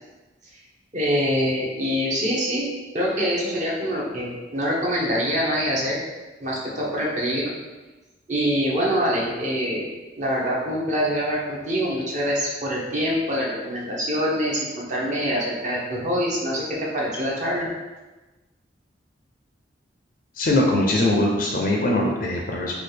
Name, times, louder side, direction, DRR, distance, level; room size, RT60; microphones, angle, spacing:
voice 1, 0.9-6.0 6.4-7.5 8.3-9.9 10.2-17.7, equal, 40° right, -4 dB, 0.7 m, -25 dB
voice 2, 20.4-22.8, left 1 dB, 50° left, 0 dB, 0.4 m, -21 dB
4.0 x 2.3 x 3.2 m, 1.2 s
head